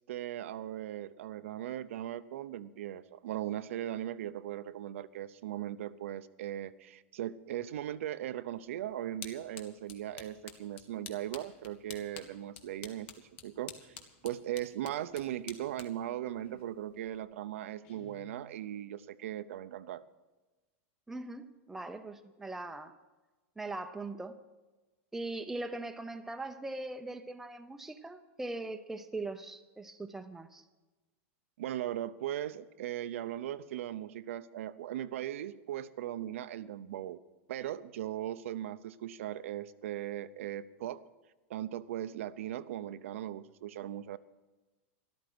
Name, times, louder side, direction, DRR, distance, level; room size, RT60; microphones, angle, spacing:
voice 1, 0.1-14.0 14.2-20.0 31.6-37.2 37.5-41.0 41.5-44.2, right 12 dB, 80° right, 0.6 m, -38 dB
sound 1, 8.5-17.2, left 8 dB, 60° left, 1.7 m, -51 dB
Guitar, 17.8-19.1, left 4 dB, 35° left, 2.0 m, -58 dB
voice 2, 21.1-23.0 23.6-24.3 25.1-30.6, right 2 dB, 5° right, 0.6 m, -40 dB
13.0 x 12.5 x 6.1 m
supercardioid pair, 165°, 7 cm